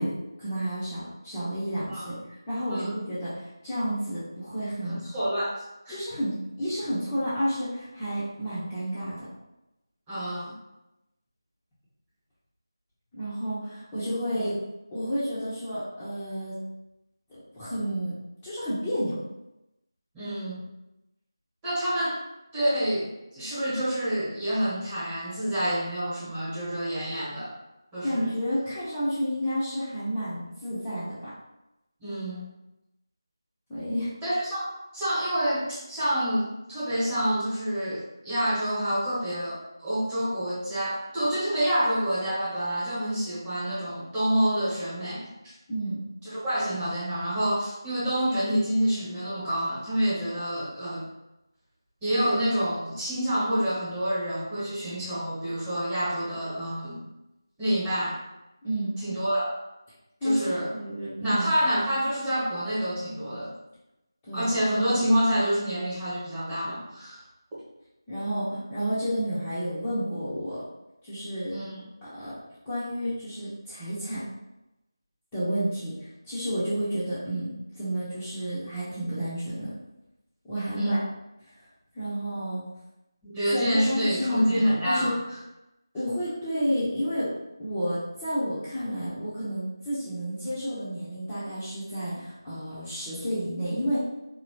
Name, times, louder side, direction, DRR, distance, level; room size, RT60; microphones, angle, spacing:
voice 1, 0.0-2.2 2.5-5.0 5.9-9.3 13.1-14.5 14.9-16.6 17.3-18.1 18.4-19.2 28.0-31.3 33.7-34.1 45.7-46.0 58.6-58.9 60.2-61.5 64.2-64.5 68.1-70.6 71.0-71.6 72.0-72.3 72.6-74.2 75.3-79.7 80.4-81.0 81.9-82.6 83.5-85.1 85.9-87.3 87.6-94.0, equal, 10° left, -14 dB, 0.8 m, -30 dB
voice 2, 4.9-5.5 5.8-6.0 10.1-10.5 14.3-14.5 20.1-20.6 21.6-22.2 22.5-27.5 27.9-28.3 32.0-32.5 34.2-34.7 34.9-45.5 46.2-51.1 52.0-57.0 57.6-58.2 59.0-59.5 60.2-60.7 61.2-63.5 64.3-67.2 71.5-71.8 80.7-81.0 83.2-85.2, equal, 10° right, -12 dB, 1.4 m, -27 dB
4.2 x 2.9 x 3.0 m, 0.93 s
figure-of-eight pair, 165°, 2 cm